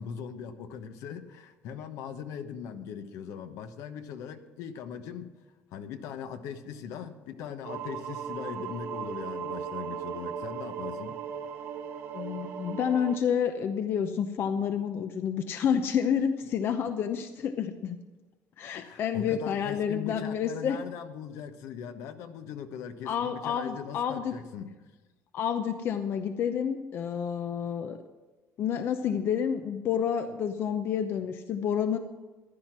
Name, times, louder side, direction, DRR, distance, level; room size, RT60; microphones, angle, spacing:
voice 1, 0.0-5.3 5.7-11.2 18.8-24.7, left 7 dB, 70° left, 8 dB, 1.1 m, -40 dB
sound 1, 7.6-13.2, right 7 dB, 55° right, 1.4 m, -37 dB
voice 2, 12.1-18.0 18.6-20.8 23.1-24.3 25.3-28.0 28.6-32.0, left 8 dB, 45° left, 8 dB, 0.7 m, -29 dB
15.0 x 11.0 x 6.0 m, 1.2 s
cardioid pair, 150°, 5 cm